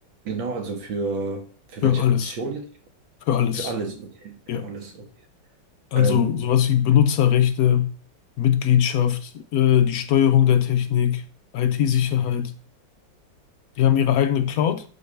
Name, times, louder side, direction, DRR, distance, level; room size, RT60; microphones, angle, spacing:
voice 1, 0.2-2.6 3.5-5.1 5.9-6.5, right 3 dB, 80° right, 2.3 m, -31 dB
voice 2, 1.8-2.3 3.3-3.7 4.5-4.7 5.9-7.9 8.4-11.2 11.5-12.5 13.8-14.8, left 10 dB, 80° left, 0.8 m, -20 dB
11.0 x 4.7 x 3.3 m
omnidirectional pair, 2.1 m